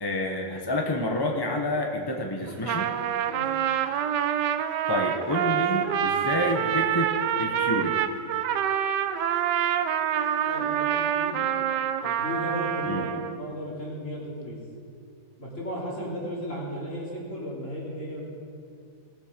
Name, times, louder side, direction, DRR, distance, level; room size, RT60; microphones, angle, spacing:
voice 1, 0.0-2.9 4.5-8.0 12.9-13.1, left 1 dB, 20° left, 1 dB, 0.8 m, -29 dB
Trumpet, 2.5-13.4, right 9 dB, 85° right, 1.2 m, -26 dB
voice 2, 10.5-11.4 12.0-13.1 13.4-14.6 15.4-18.2, equal, 45° left, -5 dB, 3.3 m, -35 dB
19.5 x 7.8 x 5.2 m, 2.4 s
omnidirectional pair, 1.9 m